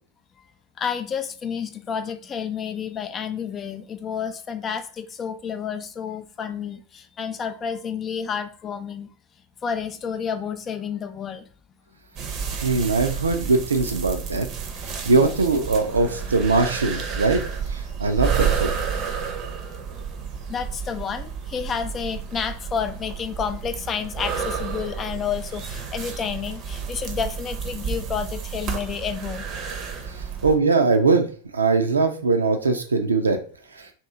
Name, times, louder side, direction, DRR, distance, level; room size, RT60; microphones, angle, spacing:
voice 1, 0.8-9.1 9.6-11.5 14.9-15.0 19.6-19.8 20.5-29.5, left 7 dB, 25° left, 9 dB, 0.3 m, -30 dB
sound 1, 12.2-30.6, right 6 dB, 35° right, 0.6 m, -31 dB
voice 2, 12.6-14.5 15.0-17.4 17.7-18.7 30.2-31.3 31.5-33.4 33.8-33.9, right 3 dB, 75° right, 6 dB, 0.5 m, -21 dB
2.9 x 2.6 x 3.5 m, 0.42 s
figure-of-eight pair, 90°, 0 cm